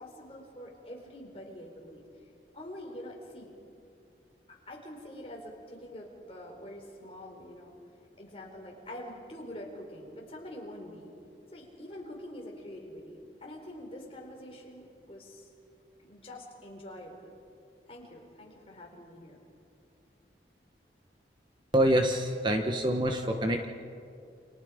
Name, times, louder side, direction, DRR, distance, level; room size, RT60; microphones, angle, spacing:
voice 1, 0.0-2.0 2.5-3.5 4.5-7.8 8.2-11.1 11.5-15.5 16.0-17.1 17.9-19.4, left 1 dB, 35° left, 0 dB, 4.5 m, -45 dB
voice 2, 21.7-23.7, right 1 dB, 25° right, 4 dB, 1.2 m, -26 dB
29.5 x 27.5 x 5.2 m, 2.5 s
head